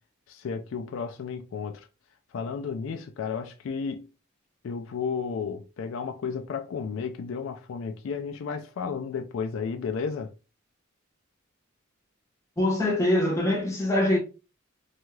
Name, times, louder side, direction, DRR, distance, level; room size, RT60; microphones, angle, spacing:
voice 1, 0.3-1.9 2.3-4.1 4.6-10.3, left 5 dB, 70° left, 0.3 m, -33 dB
voice 2, 12.6-14.2, left 1 dB, 15° left, 0.7 m, -23 dB
2.7 x 2.3 x 3.1 m
head